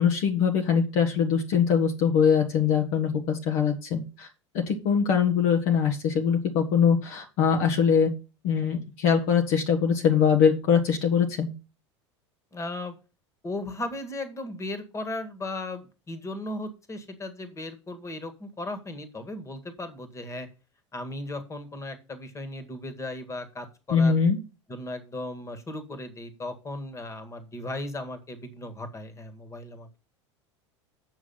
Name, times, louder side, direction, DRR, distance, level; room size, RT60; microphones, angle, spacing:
voice 1, 0.0-4.3 4.5-8.1 8.4-11.5 23.9-24.4, left 7 dB, 50° left, 3 dB, 1.3 m, -22 dB
voice 2, 12.5-13.0 13.4-20.5 20.9-24.2 24.7-30.0, left 2 dB, 20° left, 10 dB, 1.8 m, -36 dB
8.1 x 6.1 x 5.7 m, 0.32 s
figure-of-eight pair, 75°, 15 cm